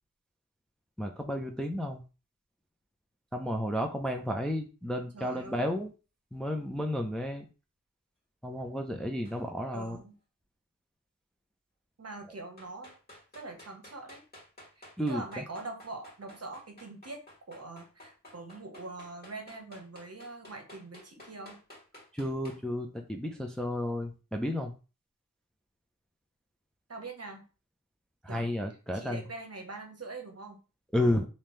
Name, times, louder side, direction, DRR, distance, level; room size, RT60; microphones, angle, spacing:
voice 1, 1.0-2.0 3.3-5.9 6.3-7.5 8.4-10.0 15.0-15.4 22.1-24.7 28.2-29.2 30.9-31.3, left 1 dB, ahead, 4 dB, 0.5 m, -32 dB
voice 2, 5.1-5.7 9.7-10.1 12.0-12.9 13.3-14.2 14.8-21.6 26.9-27.4 28.3-28.5 28.9-30.6 31.0-31.2, right 3 dB, 45° right, 3 dB, 1.0 m, -43 dB
sound 1, 9.2-9.5 12.6-22.6, left 1 dB, 30° left, 1.9 m, -53 dB
3.5 x 2.8 x 3.1 m, 0.32 s
wide cardioid pair, 80°, 33 cm